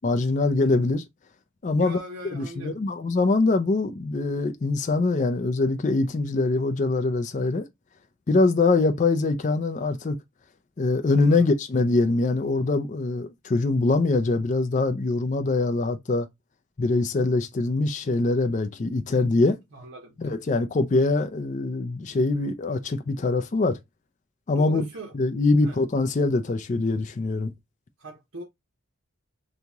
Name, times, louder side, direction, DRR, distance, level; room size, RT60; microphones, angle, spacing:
voice 1, 0.0-1.0 1.6-2.0 2.3-7.7 8.3-10.2 10.8-16.3 16.8-19.6 20.2-23.8 24.5-24.9 25.1-27.5, left 3 dB, 35° left, 0.4 m, -23 dB
voice 2, 1.8-2.8 11.2-11.6 19.7-20.3 24.6-25.1 25.6-25.8 28.0-28.4, equal, 75° right, 0.9 m, -39 dB
2.9 x 2.8 x 3.4 m
head